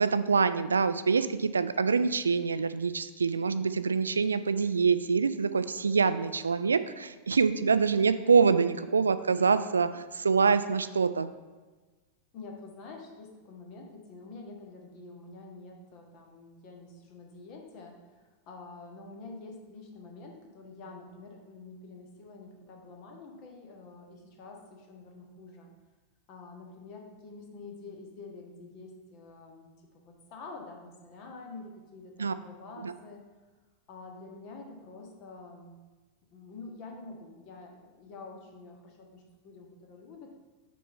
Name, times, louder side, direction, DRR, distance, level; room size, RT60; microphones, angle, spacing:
voice 1, 0.0-11.3 32.2-32.3 32.8-32.9, right 5 dB, 75° right, 13 dB, 0.3 m, -25 dB
voice 2, 7.7-8.3 9.3-9.5 12.3-25.7 26.3-29.7 29.9-33.2 33.9-35.8 36.3-40.3, left 3 dB, 40° left, 1 dB, 1.4 m, -47 dB
6.3 x 4.3 x 5.5 m, 1.3 s
figure-of-eight pair, 90°, 0 cm